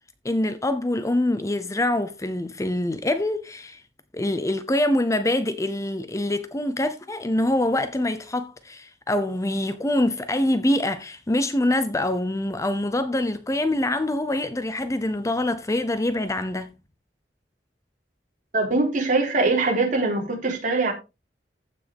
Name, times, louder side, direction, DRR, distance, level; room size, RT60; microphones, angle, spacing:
voice 1, 0.2-3.8 4.1-16.7, left 1 dB, 20° left, 0.7 m, -25 dB
voice 2, 18.5-20.9, right 3 dB, 50° right, 3.9 m, -22 dB
15.0 x 6.1 x 3.5 m
head